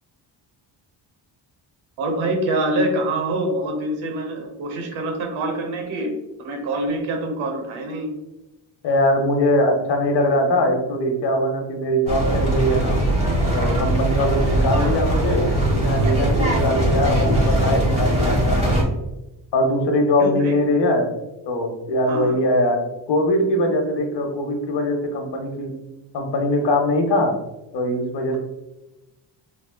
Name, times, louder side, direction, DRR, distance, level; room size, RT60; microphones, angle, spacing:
voice 1, 2.0-6.1 6.4-8.1 14.8-15.0 20.2-20.6 22.1-22.4, right 1 dB, 90° right, 4 dB, 0.9 m, -25 dB
voice 2, 8.8-13.0 13.5-18.9 19.5-21.1 21.4-22.8 23.1-25.7 26.1-27.4 27.7-28.4, left 1 dB, 60° left, 3 dB, 0.9 m, -21 dB
sound 1, 12.1-18.8, right 1 dB, 15° right, 1.3 m, -20 dB
3.7 x 3.4 x 2.2 m, 0.98 s
cardioid pair, 95°, 47 cm